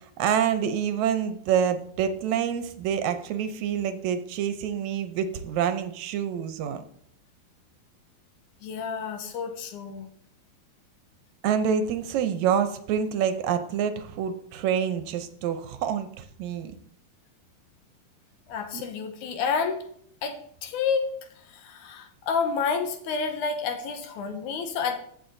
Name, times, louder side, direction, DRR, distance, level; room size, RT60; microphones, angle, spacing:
voice 1, 0.2-6.8 11.4-16.7 18.7-18.8, right 8 dB, 75° right, 9 dB, 1.9 m, -27 dB
voice 2, 8.6-10.1 18.5-19.8 20.2-20.4 20.6-21.1 21.5-25.0, left 5 dB, 85° left, 6 dB, 2.4 m, -29 dB
15.0 x 6.3 x 2.6 m, 0.65 s
omnidirectional pair, 3.5 m